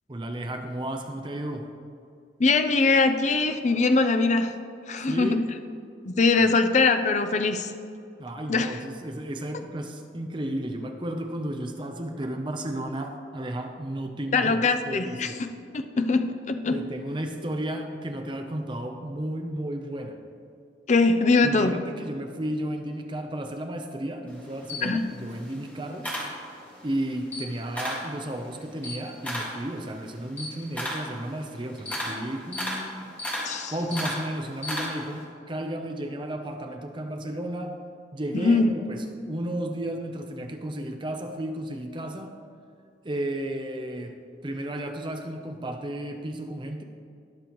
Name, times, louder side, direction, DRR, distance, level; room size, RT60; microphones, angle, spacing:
voice 1, 0.1-1.7 5.1-5.4 8.2-14.6 14.9-15.4 16.7-20.2 21.4-26.1 26.8-33.1 33.7-37.8 38.1-42.3 43.0-46.8, right 1 dB, 25° right, 5 dB, 0.6 m, -33 dB
voice 2, 2.4-4.6 4.9-5.5 6.1-7.7 8.5-8.7 14.3-15.5 15.7-16.8 20.9-21.8 24.8-25.1 33.4-33.7 38.3-38.7, left 3 dB, 40° left, 8 dB, 0.5 m, -22 dB
Camera, 24.3-26.9 27.2-28.1 28.5-35.2, left 1 dB, 10° left, 1.9 m, -34 dB
19.5 x 6.8 x 3.1 m, 2.4 s
head